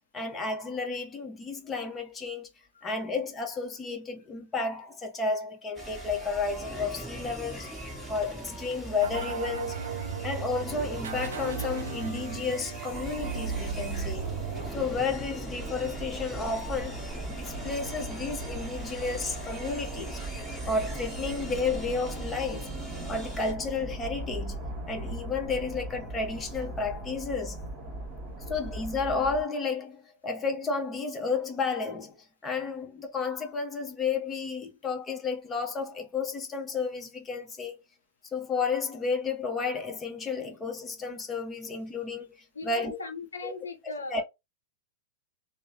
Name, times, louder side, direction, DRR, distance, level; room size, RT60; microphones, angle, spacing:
voice 1, 0.1-2.5 2.8-7.7 8.1-9.8 10.2-14.3 14.7-20.2 20.6-22.7 23.1-24.6 24.9-27.6 28.5-37.8 38.3-43.0 43.4-43.5 44.1-44.2, left 4 dB, 20° left, 0.8 m, -32 dB
sound 1, 5.8-23.5, right 2 dB, ahead, 1.3 m, -41 dB
sound 2, 9.0-14.7, right 6 dB, 75° right, 0.5 m, -36 dB
sound 3, 12.9-29.4, right 1 dB, 25° right, 1.4 m, -39 dB
voice 2, 42.5-44.2, left 3 dB, 85° left, 0.7 m, -39 dB
3.0 x 2.1 x 2.5 m
hypercardioid pair, 105°, 0 cm